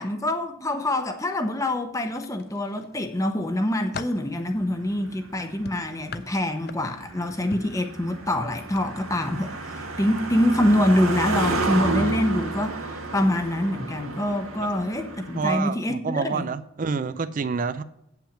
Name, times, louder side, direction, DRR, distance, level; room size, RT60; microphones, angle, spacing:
voice 1, 0.0-9.5 10.0-16.4, left 1 dB, 15° left, 0.8 m, -25 dB
sound 1, 2.1-2.9 3.4-4.3 5.6-7.1 7.5-7.8 8.7-8.9 9.2-9.4, left 5 dB, 45° left, 0.4 m, -39 dB
Car passing by, 4.3-15.5, right 3 dB, 80° right, 1.9 m, -32 dB
voice 2, 15.4-17.8, right 5 dB, 40° right, 0.4 m, -27 dB
8.7 x 5.9 x 7.2 m
head